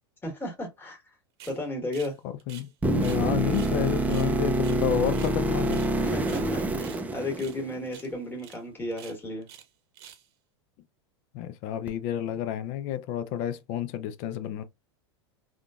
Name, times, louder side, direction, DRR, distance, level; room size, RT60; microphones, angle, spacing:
voice 1, 0.2-1.0 1.5-2.2 6.0-9.5, left 1 dB, 15° left, 1.4 m, -34 dB
sound 1, 1.4-1.6 1.9-2.1 2.4-3.2 3.5-3.8 4.1-5.4 5.7-5.9 6.2-7.0 7.4-7.6 7.9-8.1 8.4-8.6 8.9-9.7 9.9-10.3, right 10 dB, 70° right, 0.8 m, -49 dB
voice 2, 2.5-5.8 11.3-14.6, left 10 dB, 55° left, 0.5 m, -30 dB
sound 2, 2.8-7.9 11.9-12.0, right 1 dB, 10° right, 0.4 m, -27 dB
3.6 x 2.3 x 2.4 m
hypercardioid pair, 115°, 14 cm